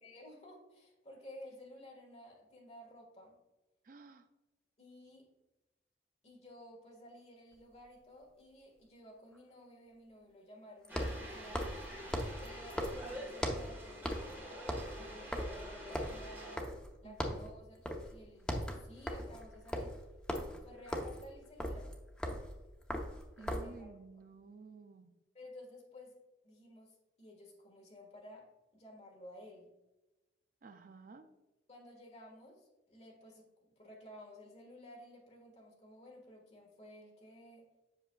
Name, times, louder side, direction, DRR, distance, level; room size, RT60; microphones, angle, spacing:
voice 1, 0.0-3.4 4.8-5.3 6.2-11.7 12.4-16.7 17.0-20.0 20.6-21.9 23.4-23.9 25.3-26.1 26.4-28.5 28.7-29.7 31.7-37.7, left 1 dB, 35° left, 0 dB, 1.4 m, -54 dB
voice 2, 3.8-4.3 17.0-17.5 23.4-25.1 30.6-31.3, right 4 dB, 45° right, 8 dB, 0.4 m, -53 dB
sound 1, 7.5-7.6 10.8-13.8 14.0-14.4 14.6-16.9 17.2-17.5 17.9-18.1 18.4-23.8, equal, 5° left, 0.6 m, -39 dB
sound 2, 10.9-16.6, equal, 10° right, 1.5 m, -47 dB
7.9 x 5.8 x 2.3 m, 1.1 s
head